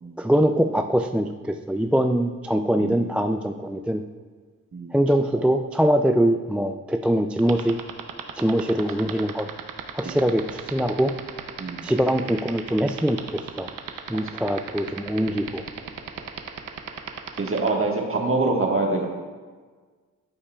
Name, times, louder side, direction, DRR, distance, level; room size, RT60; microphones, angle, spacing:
voice 1, 0.2-4.0 4.9-7.8 8.4-9.5 9.9-11.1 11.8-13.7 14.1-15.6, equal, 5° right, 6 dB, 0.3 m, -23 dB
sound 1, 7.4-17.7, right 9 dB, 80° right, 0.7 m, -33 dB
voice 2, 17.4-19.0, right 3 dB, 40° right, 0 dB, 1.5 m, -25 dB
13.0 x 5.5 x 2.3 m, 1.5 s
cardioid pair, 55°, 32 cm